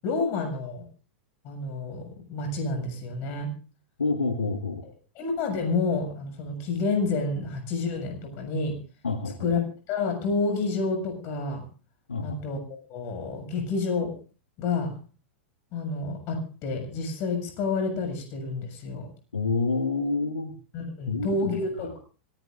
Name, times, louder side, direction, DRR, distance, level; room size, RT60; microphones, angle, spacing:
voice 1, 0.0-0.8 1.4-3.5 4.8-8.8 9.4-11.6 12.2-12.6 12.9-14.1 14.6-15.0 15.7-19.1 20.7-22.0, left 3 dB, 40° left, 5 dB, 7.2 m, -29 dB
voice 2, 4.0-4.8 9.0-9.5 12.1-12.4 19.3-20.5 21.1-21.5, left 3 dB, 80° left, 6 dB, 1.7 m, -28 dB
25.5 x 16.5 x 2.6 m, 0.37 s
figure-of-eight pair, 100°, 6 cm